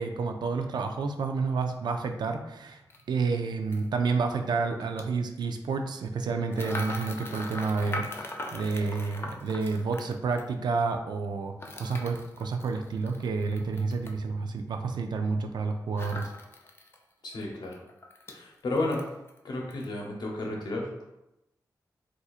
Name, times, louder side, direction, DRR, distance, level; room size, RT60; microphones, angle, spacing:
voice 1, 0.0-2.8 3.1-16.3, right 4 dB, 85° right, 6 dB, 0.3 m, -30 dB
sound 1, 2.9-3.0 3.7-3.9 4.8-5.0 6.5-10.5 11.6-14.2 16.0-17.0 17.3-17.4 17.7-18.4 18.8-19.4 19.7-19.9, left 2 dB, 35° left, 0.4 m, -40 dB
voice 2, 17.2-17.8 18.3-19.1 19.4-21.1, left 2 dB, 80° left, -1 dB, 0.8 m, -32 dB
4.1 x 2.5 x 2.4 m, 0.90 s
wide cardioid pair, 115°, 7 cm